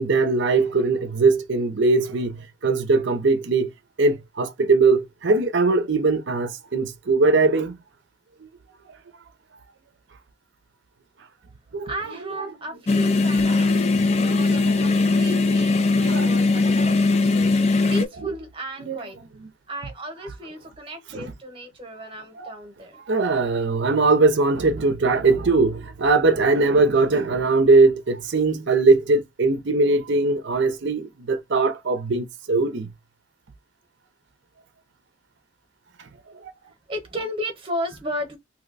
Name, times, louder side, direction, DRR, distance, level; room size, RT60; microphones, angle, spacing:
voice 1, 0.0-2.3 2.6-3.7 4.0-7.7 11.7-11.9 13.5-13.6 15.3-15.4 16.0-16.3 18.2-18.3 18.8-19.0 21.1-21.3 22.4-22.5 23.1-32.9, right 3 dB, 55° right, 0.6 m, -20 dB
voice 2, 11.8-19.2 19.7-23.0 36.9-38.4, equal, 25° right, 0.9 m, -35 dB
sound 1, 12.9-18.1, left 3 dB, 30° left, 0.3 m, -20 dB
2.8 x 2.1 x 3.9 m
head